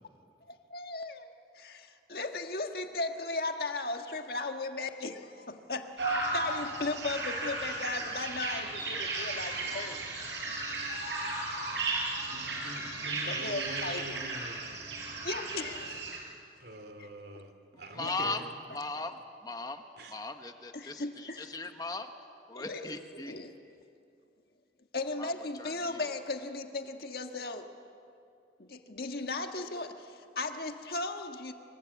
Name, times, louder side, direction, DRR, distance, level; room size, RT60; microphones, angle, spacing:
voice 1, 0.5-1.3 1.5-10.0 13.2-14.0 15.2-16.2 17.0-17.1 17.3-17.4 18.0-18.1 20.7-21.5 22.5-23.5 24.9-27.7 28.6-31.5, left 3 dB, 60° left, 5 dB, 1.6 m, -37 dB
sound 1, 6.0-16.2, right 2 dB, 90° right, 6.1 m, -35 dB
voice 2, 12.3-14.8 16.6-18.5 20.0-20.1, right 1 dB, 65° right, 6 dB, 2.8 m, -44 dB
voice 3, 17.9-18.4 18.7-19.8 20.1-22.1 22.5-23.3 25.2-25.3 25.6-26.1, left 3 dB, 20° left, 6 dB, 1.2 m, -38 dB
25.5 x 24.0 x 8.4 m, 2.5 s
head